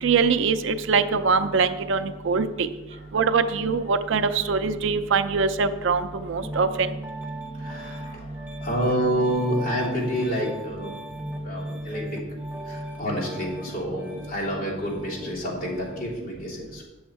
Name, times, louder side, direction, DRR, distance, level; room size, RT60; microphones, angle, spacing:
voice 1, 0.0-2.7 3.1-6.9, right 5 dB, 65° right, 9 dB, 0.5 m, -23 dB
Piano, 6.4-16.1, right 1 dB, 10° right, 0.9 m, -37 dB
voice 2, 7.5-10.9 11.4-12.0 12.6-16.8, equal, 45° left, -6 dB, 3.2 m, -28 dB
8.8 x 7.1 x 4.6 m, 1.2 s
head